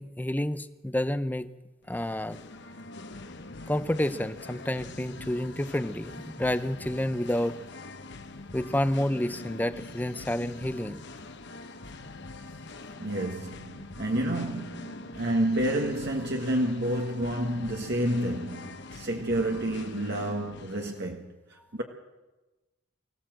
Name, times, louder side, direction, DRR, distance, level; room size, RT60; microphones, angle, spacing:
voice 1, 0.0-1.5 1.9-2.4 3.7-7.6 8.5-11.0, left 1 dB, 10° left, 0.6 m, -29 dB
Singing, 1.8-21.0, left 2 dB, 55° left, 1.2 m, -44 dB
voice 2, 13.0-21.2 21.5-21.8, right 1 dB, 55° right, 1.5 m, -29 dB
24.0 x 15.5 x 7.7 m
head